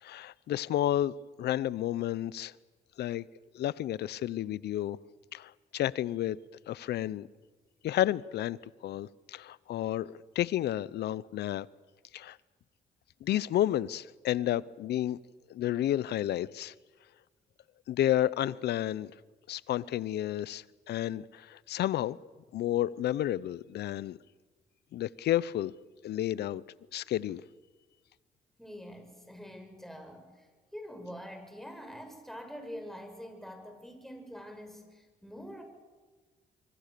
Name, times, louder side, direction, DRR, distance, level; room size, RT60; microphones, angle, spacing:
voice 1, 0.0-2.5 3.0-3.2 3.5-5.0 5.3-6.4 6.7-7.3 7.8-8.6 8.8-11.7 12.1-12.4 13.2-15.2 15.5-16.7 17.9-19.1 19.5-22.2 22.5-24.2 24.9-25.7 26.0-26.6 26.9-27.4, left 12 dB, 75° left, 21 dB, 0.7 m, -31 dB
voice 2, 28.6-35.6, equal, ahead, 4 dB, 6.8 m, -45 dB
25.0 x 24.0 x 6.8 m, 1.3 s
supercardioid pair, 65°, 17 cm